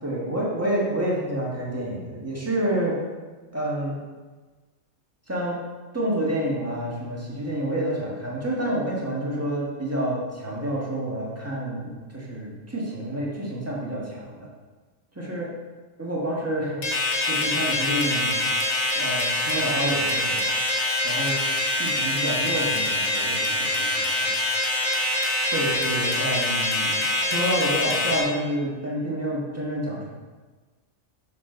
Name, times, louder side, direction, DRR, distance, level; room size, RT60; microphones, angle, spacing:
voice 1, 0.0-2.9 3.5-4.0 5.3-5.5 5.9-14.5 15.1-15.5 16.0-18.5 18.9-20.5 21.0-21.4 21.8-24.4 25.5-30.1, right 1 dB, 10° right, -5 dB, 1.6 m, -28 dB
sound 1, 16.8-28.2, left 2 dB, 75° left, 1.8 m, -25 dB
6.7 x 6.6 x 3.9 m, 1.3 s
omnidirectional pair, 1.4 m